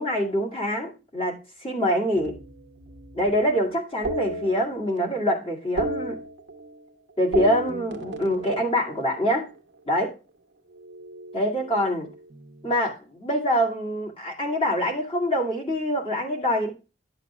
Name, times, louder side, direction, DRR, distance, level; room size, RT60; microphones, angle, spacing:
voice 1, 0.0-2.4 3.1-6.2 7.2-9.5 9.9-10.1 11.3-12.1 12.6-16.7, equal, 30° left, -3 dB, 2.2 m, -25 dB
sound 1, 2.1-3.4 4.0-5.2 5.5-6.9 7.2-9.6 10.7-12.5, right 2 dB, 85° right, 0.8 m, -34 dB
12.5 x 7.8 x 2.4 m, 0.32 s
head